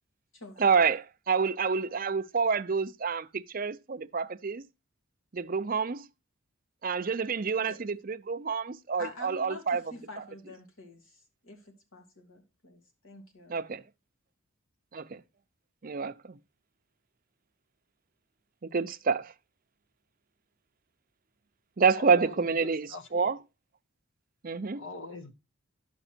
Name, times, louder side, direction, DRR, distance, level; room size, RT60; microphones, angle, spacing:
voice 1, 0.6-4.7 5.3-6.1 6.8-9.8 13.5-13.8 14.9-15.2 15.8-16.4 18.7-19.3 21.8-23.4 24.4-24.8, right 5 dB, 40° right, 0.5 m, -28 dB
voice 2, 9.0-13.6, left 2 dB, 75° left, 2.6 m, -47 dB
voice 3, 22.0-23.3 24.7-25.3, left 4 dB, 60° left, 1.2 m, -43 dB
11.0 x 5.9 x 4.4 m
head